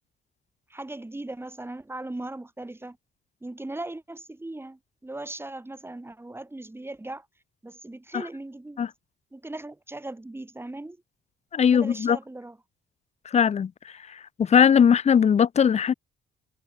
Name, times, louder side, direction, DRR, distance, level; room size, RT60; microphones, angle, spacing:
voice 1, 0.7-3.0 3.4-7.3 7.6-8.8 9.3-11.0 11.7-12.6, right 2 dB, 10° right, 3.5 m, -38 dB
voice 2, 11.5-12.2 13.3-13.7 14.1-15.9, left 7 dB, 35° left, 0.5 m, -20 dB
cardioid pair, 90°, 20 cm